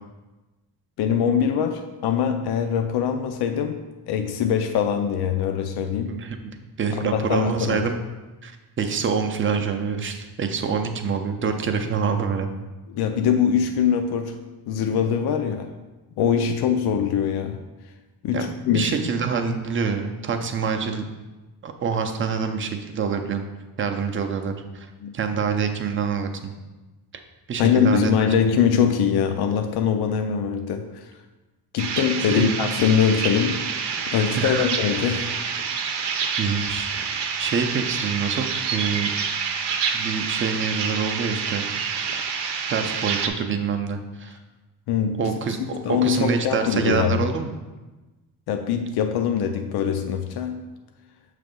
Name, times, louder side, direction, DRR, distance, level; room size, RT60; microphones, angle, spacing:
voice 1, 1.0-6.2 7.1-7.9 12.9-14.4 14.7-15.7 16.2-17.6 18.2-18.9 25.0-25.1 27.6-31.1 31.7-33.6 34.1-35.3 44.9-45.3 45.7-47.3 48.5-50.6, left 7 dB, 70° left, 6 dB, 0.5 m, -23 dB
voice 2, 6.1-8.0 8.4-12.6 18.3-18.4 18.7-21.0 21.6-23.5 23.8-26.5 27.5-28.1 32.3-32.5 34.3-34.7 36.4-39.1 39.9-41.6 42.7-44.4 45.2-47.5, right 5 dB, 30° right, 5 dB, 0.5 m, -26 dB
sound 1, 31.8-43.3, right 6 dB, 85° right, 0.8 m, -28 dB
6.9 x 3.3 x 5.2 m, 1.2 s
cardioid pair, 160°, 40 cm